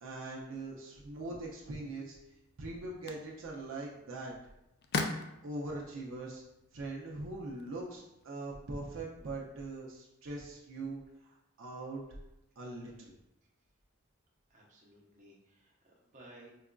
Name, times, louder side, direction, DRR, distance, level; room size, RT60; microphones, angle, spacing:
voice 1, 0.0-2.2 2.6-4.3 5.4-6.4 6.7-12.0 12.6-13.1, right 2 dB, 70° right, -3 dB, 0.5 m, -42 dB
sound 1, 2.1-8.3, left 4 dB, 50° left, 0.3 m, -43 dB
voice 2, 14.5-16.5, right 1 dB, 35° right, -4 dB, 0.8 m, -57 dB
4.7 x 2.4 x 2.2 m, 0.88 s
head